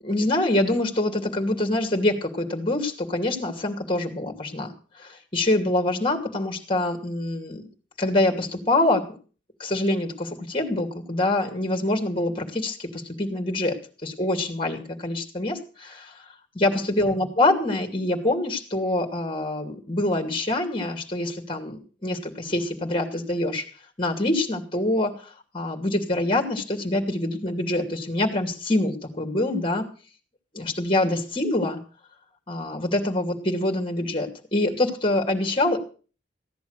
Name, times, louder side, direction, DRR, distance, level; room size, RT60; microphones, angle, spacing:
voice 1, 0.0-4.7 5.0-7.6 8.0-9.2 9.6-13.8 14.0-16.1 16.5-23.7 24.0-29.8 30.5-31.8 32.5-35.8, left 1 dB, 30° left, 4 dB, 2.6 m, -25 dB
15.5 x 10.5 x 6.6 m, 0.38 s
head